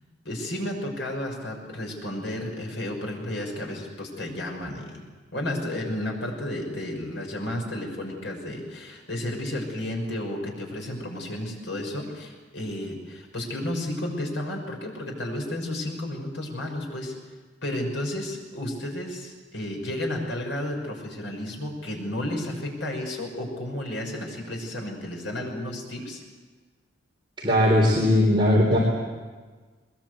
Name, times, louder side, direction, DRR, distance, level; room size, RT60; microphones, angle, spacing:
voice 1, 0.2-5.0 5.3-17.1 17.6-26.2, left 1 dB, 80° left, 1 dB, 6.2 m, -32 dB
voice 2, 27.4-28.8, left 1 dB, 25° right, -3 dB, 4.0 m, -19 dB
22.0 x 21.5 x 8.3 m, 1.4 s
head